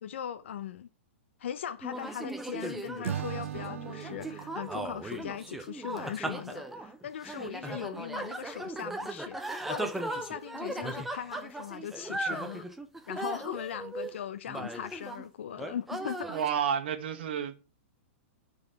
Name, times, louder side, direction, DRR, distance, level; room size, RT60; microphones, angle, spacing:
voice 1, 0.0-0.9 1.4-12.7 13.1-16.3, left 9 dB, 65° left, 0.5 m, -39 dB
sound 1, 1.8-15.2 15.6-16.5, right 2 dB, ahead, 0.4 m, -38 dB
Acoustic guitar / Strum, 3.0-6.3, right 10 dB, 85° right, 0.5 m, -40 dB
voice 2, 16.3-17.5, right 8 dB, 50° right, 1.2 m, -30 dB
10.5 x 4.1 x 5.6 m
supercardioid pair, 175°, 7 cm